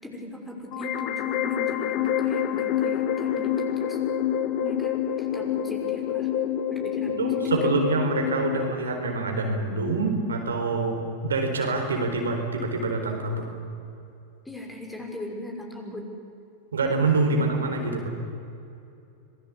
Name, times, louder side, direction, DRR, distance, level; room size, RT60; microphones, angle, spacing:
voice 1, 0.0-4.0 4.6-6.3 6.7-7.7 14.4-16.1, left 1 dB, 10° left, 1 dB, 5.9 m, -39 dB
sound 1, 0.7-8.7, left 10 dB, 50° left, 1.5 m, -27 dB
voice 2, 7.2-13.4 16.7-18.1, right 3 dB, 85° right, 3 dB, 4.2 m, -26 dB
26.0 x 19.0 x 8.5 m, 2.7 s
hypercardioid pair, 95°, 0 cm